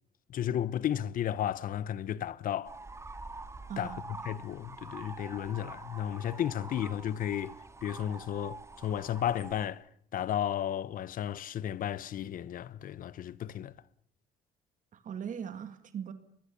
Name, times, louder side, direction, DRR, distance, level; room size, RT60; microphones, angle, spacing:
voice 1, 0.3-2.7 3.8-9.8 10.1-13.7, left 10 dB, 55° left, 0.9 m, -33 dB
sound 1, 2.6-9.7, right 3 dB, 15° right, 2.0 m, -46 dB
voice 2, 14.9-16.1, right 8 dB, 50° right, 2.0 m, -39 dB
24.5 x 21.5 x 7.0 m
cardioid pair, 110°, 17 cm